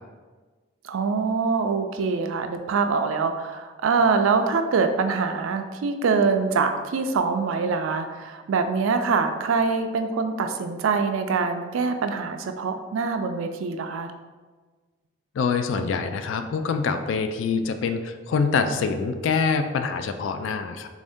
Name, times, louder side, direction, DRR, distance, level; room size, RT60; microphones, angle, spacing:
voice 1, 0.8-14.1, right 4 dB, 75° right, 7 dB, 0.3 m, -24 dB
voice 2, 15.3-20.9, left 5 dB, 70° left, 8 dB, 0.3 m, -25 dB
3.5 x 2.6 x 3.4 m, 1.4 s
head